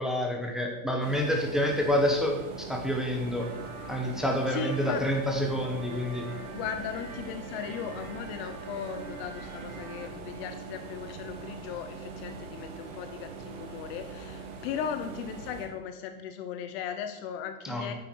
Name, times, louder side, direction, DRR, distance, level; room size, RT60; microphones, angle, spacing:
voice 1, 0.0-3.5 3.9-6.2 17.6-17.9, equal, ahead, 0 dB, 1.0 m, -28 dB
sound 1, 1.0-15.7, right 5 dB, 55° right, 2.1 m, -42 dB
sound 2, 3.4-10.1, right 3 dB, 85° right, 2.5 m, -45 dB
voice 2, 4.5-5.0 6.5-17.9, left 8 dB, 45° left, 8 dB, 0.8 m, -37 dB
9.5 x 6.8 x 4.6 m, 1.1 s
supercardioid pair, 150°, 42 cm